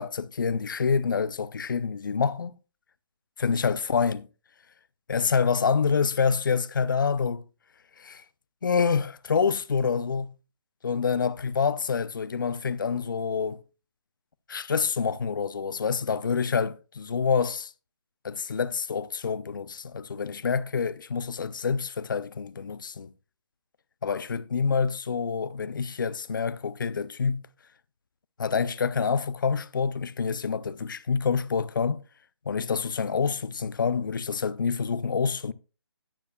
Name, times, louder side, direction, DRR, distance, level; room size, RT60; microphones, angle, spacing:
voice 1, 0.0-2.5 3.4-4.3 5.1-7.4 8.0-8.2 8.6-10.3 10.8-13.6 14.5-17.7 18.2-23.1 24.0-27.5 28.4-32.0 32.5-35.5, left 5 dB, 45° left, 0.5 m, -27 dB
13.5 x 9.6 x 2.2 m
hypercardioid pair, 170°, 14 cm